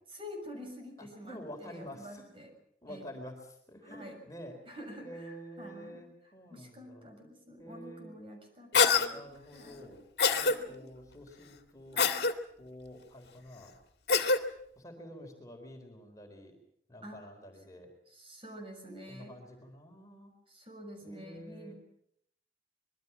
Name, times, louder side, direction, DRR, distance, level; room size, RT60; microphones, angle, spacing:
voice 1, 0.1-2.5 2.9-3.0 3.8-4.2 4.7-10.0 10.4-10.9 11.9-12.3 17.0-17.2 18.1-19.3 20.5-21.7, equal, 30° right, 4 dB, 6.7 m, -48 dB
voice 2, 1.0-2.3 2.8-4.8 5.0-7.1 7.6-8.1 9.1-10.0 10.3-12.0 12.6-13.8 14.8-16.6 16.9-17.9 19.1-20.3 21.0-21.7, equal, 20° left, 3 dB, 4.0 m, -48 dB
Cough, 8.7-9.1 10.2-10.6 12.0-12.3 14.1-14.4, left 5 dB, 65° left, 2.1 m, -24 dB
25.5 x 22.5 x 5.8 m, 0.70 s
head